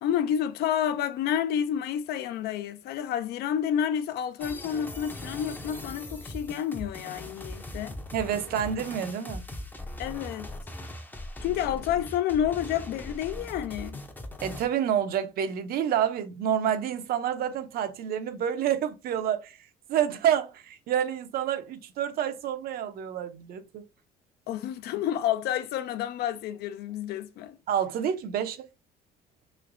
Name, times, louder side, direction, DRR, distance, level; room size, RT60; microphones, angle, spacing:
voice 1, 0.0-8.0 10.0-10.5 11.4-14.0 24.5-27.6, left 10 dB, 70° left, 0.4 m, -29 dB
sound 1, 4.4-14.6, left 1 dB, 10° left, 0.5 m, -40 dB
voice 2, 8.1-9.5 14.4-23.9 27.7-28.7, right 9 dB, 65° right, 0.5 m, -28 dB
3.1 x 2.9 x 2.5 m
cardioid pair, 110°, 17 cm